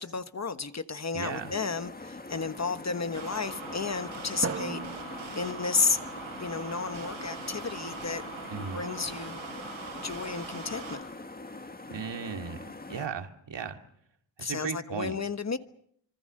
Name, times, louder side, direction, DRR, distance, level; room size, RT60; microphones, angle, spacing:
voice 1, 0.0-6.0 6.4-8.2 8.7-9.4 10.0-11.0 14.4-15.6, left 4 dB, 35° left, 1.2 m, -32 dB
voice 2, 1.1-1.5 8.5-8.8 11.9-13.8 14.4-15.2, right 6 dB, 65° right, 2.4 m, -36 dB
sound 1, 1.2-13.1, left 2 dB, 20° left, 1.8 m, -43 dB
sound 2, 3.1-11.0, right 3 dB, 80° right, 6.0 m, -42 dB
Drum, 4.4-6.7, right 5 dB, 35° right, 1.1 m, -39 dB
25.5 x 25.0 x 6.6 m
wide cardioid pair, 110°, 46 cm